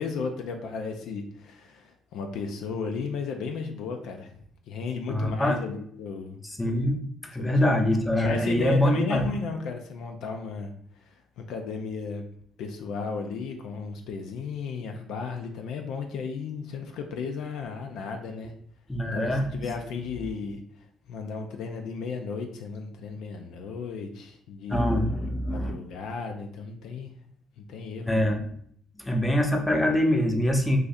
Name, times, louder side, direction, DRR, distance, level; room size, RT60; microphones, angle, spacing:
voice 1, 0.0-4.3 4.7-6.4 7.4-7.5 8.2-10.7 11.0-12.2 12.6-18.5 19.1-20.6 21.1-24.8 25.5-27.1 27.6-28.3, left 5 dB, 75° left, 4 dB, 0.4 m, -34 dB
voice 2, 5.1-5.6 6.4-9.3 18.9-19.5 24.7-25.8 28.1-28.4 29.0-30.8, left 1 dB, 15° left, 2 dB, 0.7 m, -24 dB
2.5 x 2.4 x 4.0 m, 0.64 s
supercardioid pair, 65°, 0 cm